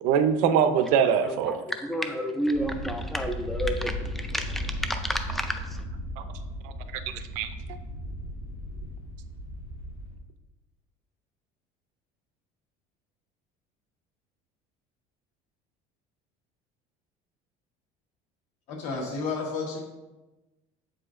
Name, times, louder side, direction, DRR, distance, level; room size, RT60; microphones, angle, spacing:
voice 1, 0.0-1.6 6.2-6.3 6.6-7.5, right 7 dB, 65° right, 10 dB, 0.5 m, -24 dB
voice 2, 1.7-5.8, equal, ahead, 6 dB, 0.3 m, -30 dB
sound 1, 2.5-10.2, equal, 90° left, 1.3 m, -36 dB
voice 3, 18.7-19.8, left 4 dB, 55° left, 0 dB, 1.3 m, -31 dB
7.6 x 4.9 x 2.5 m, 1.1 s
cardioid pair, 175°, 14 cm